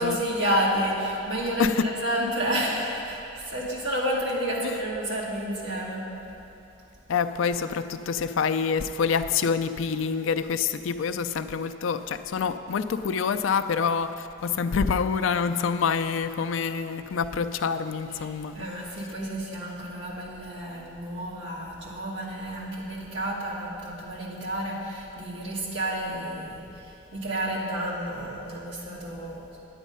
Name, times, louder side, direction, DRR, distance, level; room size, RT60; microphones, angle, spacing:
voice 1, 0.0-6.0 18.2-29.4, right 1 dB, 60° right, -5 dB, 2.2 m, -30 dB
voice 2, 7.1-18.7, left 6 dB, 75° left, 9 dB, 0.4 m, -26 dB
10.0 x 8.2 x 5.4 m, 2.8 s
head